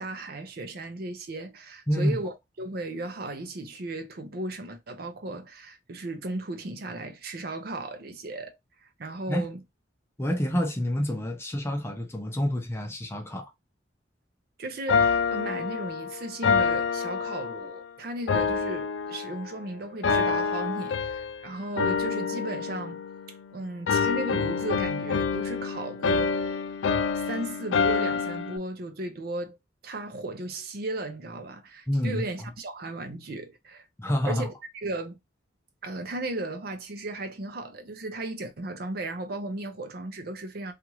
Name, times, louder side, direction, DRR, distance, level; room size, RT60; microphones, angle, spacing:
voice 1, 0.0-8.6 9.0-9.6 14.6-23.0 23.3-26.4 27.1-29.6 29.8-33.9 34.2-35.2 35.8-40.7, right 2 dB, 55° right, 0.5 m, -35 dB
voice 2, 10.2-13.5 31.9-32.2 34.0-34.5, equal, 15° left, 0.5 m, -28 dB
sound 1, 14.9-17.8 18.3-19.6 20.0-21.4 21.8-23.5 23.9-28.6, left 5 dB, 80° left, 0.4 m, -27 dB
2.9 x 2.4 x 2.9 m
head